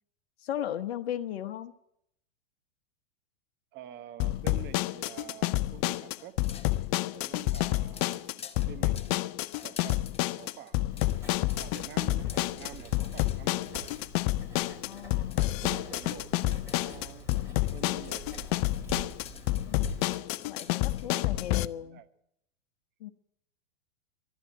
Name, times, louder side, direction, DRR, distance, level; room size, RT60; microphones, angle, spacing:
voice 1, 0.4-1.7 14.8-15.5 19.7-20.0 20.5-22.0 23.0-23.1, left 11 dB, 65° left, 1.0 m, -37 dB
voice 2, 3.7-6.4 7.1-9.3 9.6-10.8 11.6-14.0 15.3-17.3 17.7-18.7 21.0-22.1, right 11 dB, 30° right, 1.0 m, -48 dB
sound 1, 4.2-21.6, left 17 dB, 35° left, 0.5 m, -29 dB
sound 2, 6.2-14.5 14.8-21.3, left 7 dB, 15° left, 1.0 m, -50 dB
Writing, 10.9-20.2, equal, 10° right, 3.3 m, -45 dB
12.0 x 10.5 x 9.2 m
hypercardioid pair, 115°, 34 cm